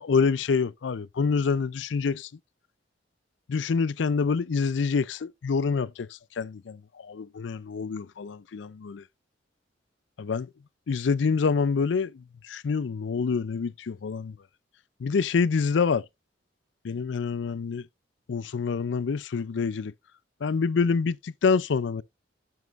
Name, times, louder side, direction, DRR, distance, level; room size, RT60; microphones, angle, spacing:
voice 1, 0.0-2.3 3.5-6.1 6.4-9.0 10.2-10.5 10.9-14.4 15.0-16.0 16.8-17.8 18.3-19.9 20.4-22.0, left 5 dB, 85° left, 0.4 m, -26 dB
7.7 x 7.3 x 2.5 m
head